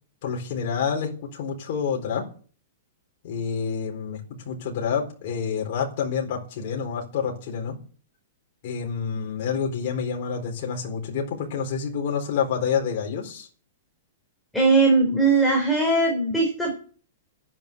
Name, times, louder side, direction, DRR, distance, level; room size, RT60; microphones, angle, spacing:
voice 1, 0.2-2.2 3.2-4.2 4.4-7.8 8.6-13.5, left 6 dB, 45° left, 0 dB, 4.0 m, -28 dB
voice 2, 14.5-16.7, right 3 dB, ahead, -2 dB, 4.0 m, -20 dB
11.5 x 10.5 x 8.4 m, 0.42 s
hypercardioid pair, 165°, 0 cm